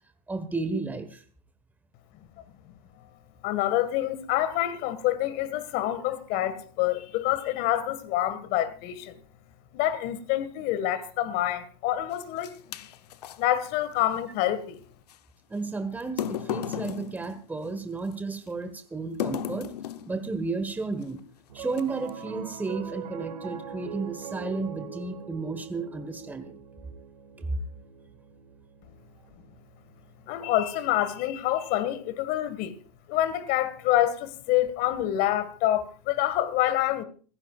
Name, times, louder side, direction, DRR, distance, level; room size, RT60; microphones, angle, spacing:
voice 1, 0.3-1.2 15.5-19.7 20.0-21.2 21.5-26.6 27.4-27.6, right 3 dB, 10° right, 1.5 m, -33 dB
voice 2, 3.4-9.2 9.7-12.9 13.4-14.8 30.3-32.8 33.1-37.0, left 13 dB, 45° left, 1.9 m, -27 dB
sound 1, 12.1-13.4 15.1-15.2 16.0-18.1 19.2-20.2 21.0-21.2 21.7-22.2, left 10 dB, 75° left, 1.0 m, -34 dB
Piano, 21.5-32.0, right 7 dB, 75° right, 2.4 m, -43 dB
28.0 x 10.5 x 2.5 m
hypercardioid pair, 110°, 21 cm